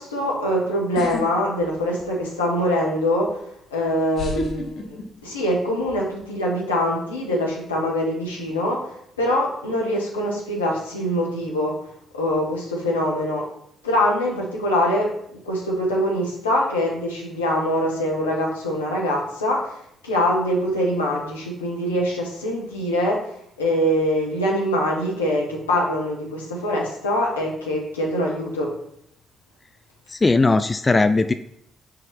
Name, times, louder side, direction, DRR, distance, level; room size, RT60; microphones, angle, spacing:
voice 1, 0.0-3.4 3.7-8.8 9.2-11.8 12.1-13.5 13.8-15.1 15.4-19.8 20.0-23.2 23.6-28.7, equal, 90° left, -2 dB, 1.2 m, -23 dB
sound 1, 0.9-1.3 1.6-2.3 3.3-3.4 4.1-5.5 5.8-6.2, left 2 dB, 60° left, 1.2 m, -31 dB
voice 2, 30.1-31.3, left 3 dB, 25° left, 12 dB, 0.3 m, -18 dB
5.8 x 4.7 x 4.2 m, 0.72 s
figure-of-eight pair, 45°, 0 cm